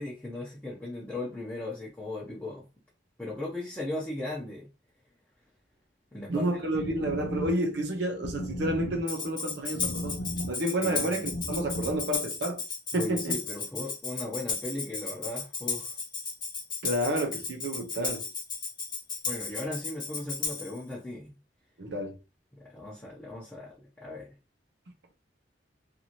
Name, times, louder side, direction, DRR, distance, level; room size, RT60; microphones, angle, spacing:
voice 1, 0.0-2.7 3.2-4.7 6.1-6.5 6.9-7.0 10.8-11.2 12.9-16.0 19.2-21.4 22.5-24.3, left 2 dB, 10° left, 0.7 m, -37 dB
voice 2, 6.3-10.2 10.5-12.6 12.9-13.4 16.8-18.2 21.8-22.2, right 1 dB, 65° right, 0.6 m, -30 dB
sound 1, 6.6-12.2, left 1 dB, 70° left, 0.5 m, -38 dB
Tambourine, 9.1-20.8, left 4 dB, 25° left, 1.0 m, -34 dB
2.7 x 2.5 x 2.9 m
head